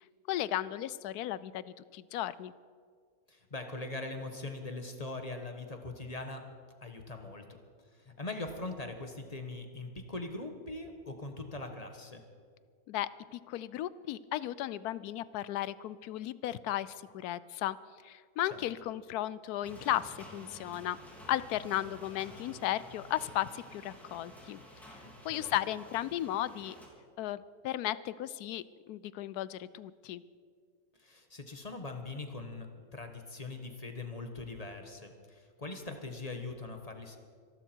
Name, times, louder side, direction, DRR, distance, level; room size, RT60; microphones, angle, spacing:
voice 1, 0.3-1.6 1.9-2.5 12.9-17.8 18.0-21.0 21.3-24.6 25.2-26.8 27.2-30.2, left 13 dB, 85° left, 18 dB, 1.1 m, -35 dB
voice 2, 3.3-6.4 6.8-7.4 7.9-12.2 18.5-18.6 25.0-25.5 31.0-32.7 32.9-37.2, left 2 dB, 25° left, 5 dB, 1.3 m, -41 dB
sound 1, 19.6-26.9, equal, ahead, 3.2 m, -51 dB
25.5 x 12.0 x 4.5 m, 2.1 s
omnidirectional pair, 1.6 m